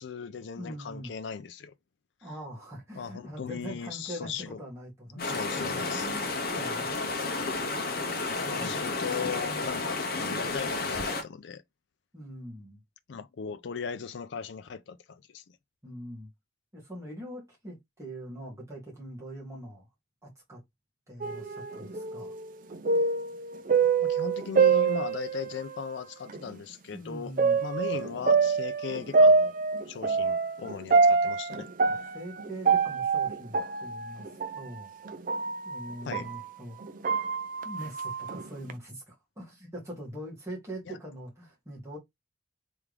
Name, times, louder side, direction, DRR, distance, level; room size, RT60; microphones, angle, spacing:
voice 1, 0.0-1.7 3.0-4.6 5.2-6.1 8.5-11.6 13.1-15.4 24.0-27.3 27.6-29.5 29.9-31.7 36.1-36.3 40.9-41.0, left 6 dB, 70° left, 0.4 m, -38 dB
voice 2, 0.6-1.1 2.2-6.3 6.6-7.1 8.5-8.8 12.1-12.8 15.8-16.3 16.7-19.9 20.2-20.6 21.1-22.3 26.9-27.6 31.9-34.9 35.6-36.8 37.6-42.0, equal, 15° right, 1.9 m, -42 dB
sound 1, 5.2-11.2, left 3 dB, 50° left, 0.9 m, -31 dB
sound 2, 21.2-25.8 26.3-26.4 27.4-36.4 36.8-38.7, right 4 dB, 45° right, 0.4 m, -26 dB
3.6 x 3.4 x 3.3 m
head